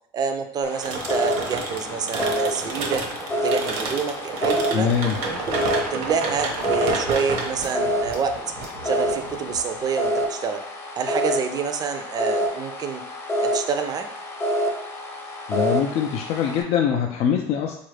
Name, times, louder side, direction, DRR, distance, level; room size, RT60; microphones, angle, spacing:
voice 1, 0.1-3.0 3.4-4.9 5.3-5.7 5.9-8.4 8.8-10.6 11.0-13.0 13.4-14.1, right 6 dB, 30° right, 6 dB, 0.4 m, -27 dB
sound 1, 0.6-16.6, equal, 20° left, 0.7 m, -28 dB
sound 2, 0.8-9.5, right 3 dB, 70° right, 0.8 m, -30 dB
voice 2, 4.7-5.2 15.5-17.8, left 8 dB, 55° left, 1 dB, 0.4 m, -23 dB
sound 3, 4.8-10.1, right 3 dB, 85° right, 1.1 m, -42 dB
3.8 x 2.4 x 3.2 m, 0.74 s
supercardioid pair, 110°, 12 cm